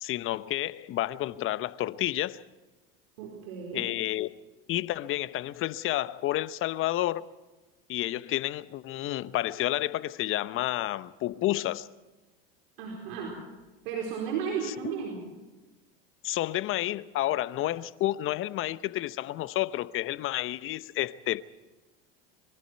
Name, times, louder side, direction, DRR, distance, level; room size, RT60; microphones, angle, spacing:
voice 1, 0.0-2.4 3.7-4.3 4.7-7.2 7.9-11.9 14.6-14.7 16.2-21.4, left 15 dB, 45° left, 1.0 m, -30 dB
voice 2, 3.2-3.9 12.8-13.4 13.8-15.2, right 6 dB, 70° right, 4.5 m, -34 dB
25.0 x 23.0 x 4.6 m
hypercardioid pair, 85°, 29 cm